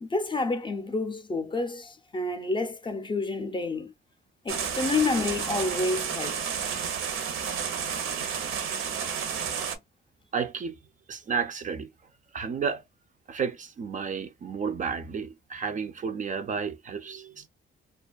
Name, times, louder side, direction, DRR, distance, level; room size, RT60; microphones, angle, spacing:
voice 1, 0.0-3.9 4.4-6.6, left 3 dB, 25° left, 0.5 m, -29 dB
sound 1, 4.5-9.8, right 7 dB, 80° right, 0.7 m, -31 dB
voice 2, 10.3-10.8 11.1-11.9 12.3-12.8 13.3-17.5, right 6 dB, 40° right, 0.4 m, -32 dB
2.4 x 2.3 x 2.3 m
cardioid pair, 140°, 21 cm